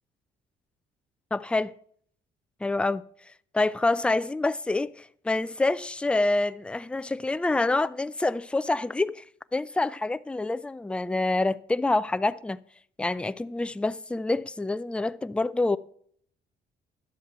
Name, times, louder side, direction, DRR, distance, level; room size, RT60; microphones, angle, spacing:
voice 1, 1.3-1.7 2.6-3.0 3.5-9.2 9.5-12.6 13.0-15.8, left 2 dB, 5° left, 0.3 m, -27 dB
11.0 x 7.2 x 4.3 m
cardioid pair, 90°, 20 cm